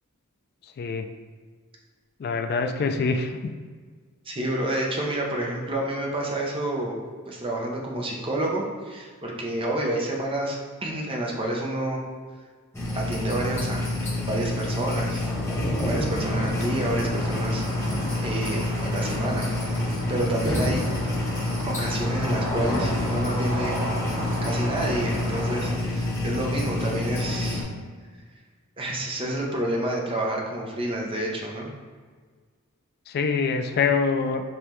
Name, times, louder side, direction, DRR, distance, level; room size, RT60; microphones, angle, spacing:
voice 1, 2.2-3.5 33.1-34.4, left 5 dB, 45° left, 6 dB, 0.3 m, -25 dB
voice 2, 4.3-7.0 7.3-12.0 12.9-14.0 14.2-15.2 15.8-17.9 18.2-19.5 20.1-20.8 21.6-23.8 24.4-27.7 28.8-31.7, right 1 dB, 25° right, -1 dB, 0.7 m, -29 dB
sound 1, 12.7-27.6, left 1 dB, 10° left, 1.2 m, -27 dB
sound 2, 16.1-25.7, right 1 dB, 90° right, 0.8 m, -35 dB
5.3 x 3.1 x 3.1 m, 1.5 s
head